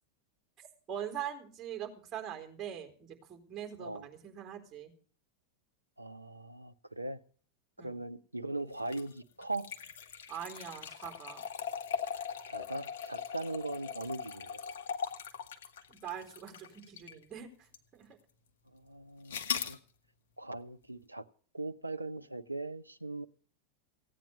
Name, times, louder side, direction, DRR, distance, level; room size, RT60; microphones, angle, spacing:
voice 1, 0.9-4.9 7.8-8.0 10.3-11.4 15.9-17.5 17.9-18.1, right 9 dB, 25° right, 4.1 m, -42 dB
voice 2, 6.0-7.2 7.8-9.7 12.5-14.6 18.7-19.4 19.7-19.8 20.4-21.2 21.5-23.3, right 2 dB, 85° right, 0.7 m, -40 dB
sound 1, 8.8-17.2 17.7-17.8 19.3-19.8, left 7 dB, 60° left, 1.4 m, -40 dB
16.5 x 9.2 x 6.4 m
figure-of-eight pair, 90°, 0 cm